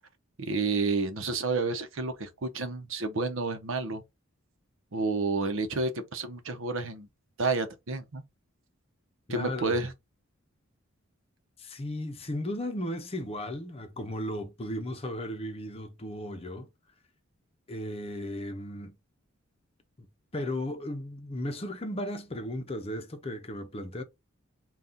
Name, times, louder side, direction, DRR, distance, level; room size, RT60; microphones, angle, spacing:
voice 1, 0.4-4.0 4.9-7.1 7.4-8.2 9.3-9.9, right 3 dB, 70° right, 0.8 m, -30 dB
voice 2, 9.3-9.8 11.6-16.7 17.7-19.0 20.0-20.1 20.3-24.0, left 1 dB, 30° left, 0.7 m, -35 dB
4.1 x 2.4 x 3.6 m
head